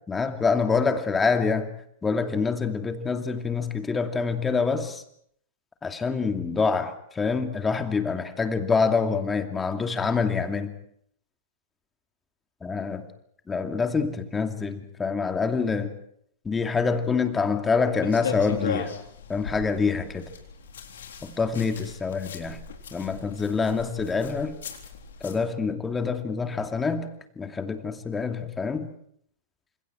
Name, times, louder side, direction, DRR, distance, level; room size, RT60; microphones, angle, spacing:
voice 1, 0.1-1.7 2.0-5.0 5.8-10.7 12.6-13.0 13.5-15.9 16.4-18.9 19.3-20.3 21.2-22.6 22.9-24.6 25.2-27.1 27.4-28.9, left 5 dB, 15° left, 6 dB, 2.6 m, -26 dB
sound 1, 18.0-25.4, left 6 dB, 65° left, 3.8 m, -37 dB
29.0 x 27.0 x 4.7 m, 0.69 s
figure-of-eight pair, 100°, 0 cm